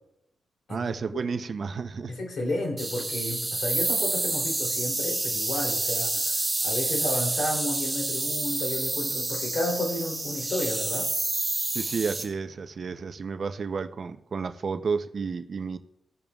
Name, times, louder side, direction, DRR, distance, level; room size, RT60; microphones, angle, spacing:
voice 1, 0.7-2.1 11.7-15.8, right 5 dB, 50° right, 10 dB, 0.6 m, -31 dB
voice 2, 2.1-11.1, left 1 dB, 60° left, 0 dB, 3.1 m, -32 dB
sound 1, 2.8-12.2, right 2 dB, 20° right, 2.7 m, -28 dB
17.5 x 7.1 x 2.4 m, 0.84 s
cardioid pair, 90°, 0 cm